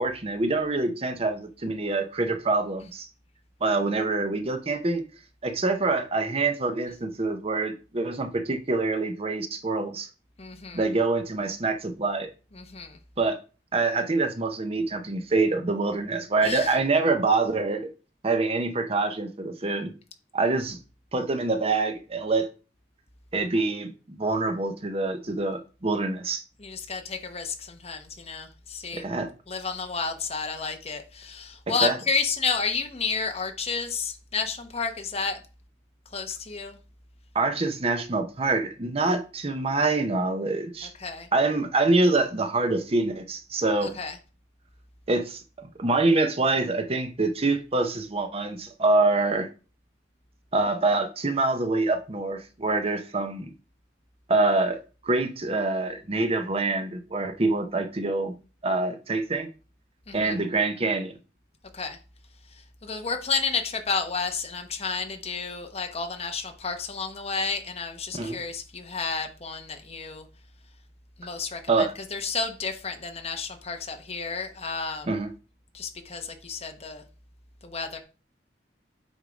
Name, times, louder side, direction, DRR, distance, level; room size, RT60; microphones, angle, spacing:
voice 1, 0.0-3.1 3.6-5.0 5.4-10.1 10.7-12.3 13.2-13.4 13.7-17.9 18.2-19.9 20.3-20.8 21.1-22.5 23.3-26.4 28.9-29.3 31.8-32.0 37.3-40.9 41.3-43.9 45.1-45.4 45.8-49.5 50.5-53.5 54.3-54.8 55.0-58.3 58.6-59.5 60.1-61.1 68.1-68.4 71.7-71.9 75.1-75.3, right 3 dB, 30° right, 0.7 m, -25 dB
voice 2, 10.4-10.8 12.5-13.0 16.4-16.7 26.6-29.1 29.5-35.4 36.1-36.8 41.0-41.3 43.8-44.2 60.1-60.4 61.7-62.0 62.8-70.2 71.2-75.1 75.7-77.0 77.6-78.0, left 5 dB, 35° left, 1.0 m, -31 dB
8.0 x 3.6 x 5.0 m
head